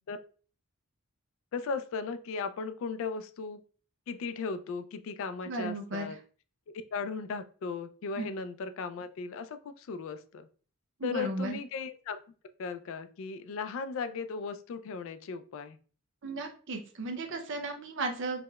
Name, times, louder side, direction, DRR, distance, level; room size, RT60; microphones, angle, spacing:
voice 1, 1.5-3.6 4.1-6.2 6.7-10.5 11.0-12.2 12.6-15.8, left 5 dB, 65° left, 11 dB, 0.3 m, -37 dB
voice 2, 5.4-6.2 8.2-8.3 11.0-11.6 16.2-18.4, right 2 dB, 55° right, 5 dB, 0.6 m, -35 dB
4.7 x 2.1 x 2.2 m, 0.40 s
head